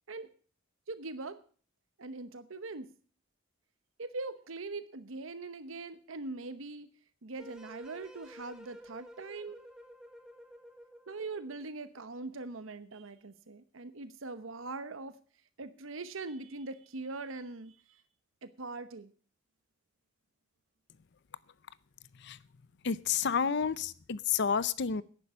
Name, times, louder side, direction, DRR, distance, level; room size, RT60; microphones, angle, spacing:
voice 1, 0.9-1.4 2.0-2.9 4.0-6.9 7.2-9.6 11.1-15.1 15.6-18.0 18.4-19.1, right 3 dB, 85° right, 12 dB, 1.0 m, -42 dB
sound 1, 7.4-11.7, equal, 5° right, 1.8 m, -52 dB
voice 2, 22.8-25.0, left 6 dB, 60° left, 18 dB, 0.6 m, -30 dB
11.0 x 9.9 x 6.9 m, 0.43 s
head